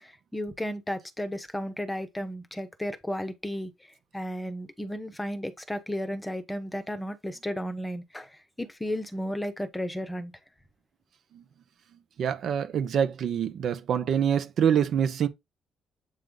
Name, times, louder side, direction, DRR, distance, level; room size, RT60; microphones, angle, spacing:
voice 1, 0.0-3.7 4.1-10.3, equal, 10° left, 0.9 m, -34 dB
voice 2, 12.2-15.3, right 8 dB, 60° right, 0.9 m, -25 dB
7.8 x 3.2 x 3.8 m
cardioid pair, 110°, 0 cm